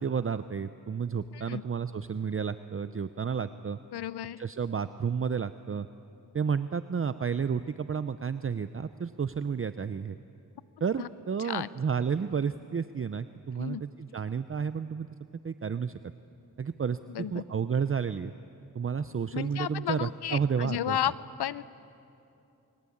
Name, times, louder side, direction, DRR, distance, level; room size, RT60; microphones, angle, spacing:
voice 1, 0.0-3.8 4.4-5.9 6.3-10.2 10.8-15.1 15.4-15.9 16.6-18.3 18.7-21.0, right 6 dB, 35° right, 12 dB, 0.7 m, -31 dB
voice 2, 3.9-4.4 11.0-11.1 11.4-11.7 13.6-13.8 17.1-17.4 19.3-21.1 21.4-21.6, left 11 dB, 85° left, 17 dB, 0.8 m, -32 dB
29.0 x 22.5 x 8.6 m, 2.7 s
cardioid pair, 80°, 39 cm